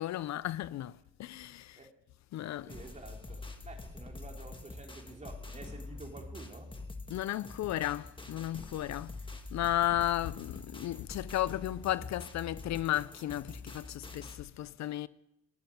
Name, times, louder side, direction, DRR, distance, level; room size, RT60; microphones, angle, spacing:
voice 1, 0.0-1.8 2.3-2.7 7.1-9.2 9.5-15.1, left 13 dB, 65° left, 0.5 m, -34 dB
voice 2, 2.6-6.7, right 2 dB, 25° right, 3.3 m, -49 dB
sound 1, 2.7-14.4, left 2 dB, 15° left, 1.7 m, -45 dB
18.5 x 7.1 x 9.1 m
cardioid pair, 90°, 30 cm